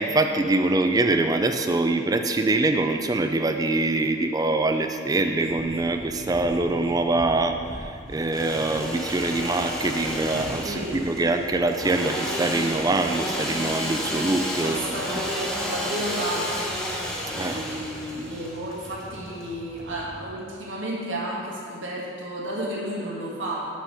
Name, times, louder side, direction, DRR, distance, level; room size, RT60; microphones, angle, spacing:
voice 1, 0.0-14.8 17.3-17.6, right 2 dB, 20° right, 6 dB, 0.4 m, -24 dB
sound 1, 5.4-20.3, right 1 dB, 65° right, 0.9 m, -43 dB
Engine / Sawing, 8.1-19.8, equal, 5° left, 0.8 m, -32 dB
voice 2, 10.6-11.0 14.6-16.8 17.3-23.7, right 1 dB, 80° right, -4 dB, 1.6 m, -32 dB
6.1 x 5.0 x 5.6 m, 2.4 s
head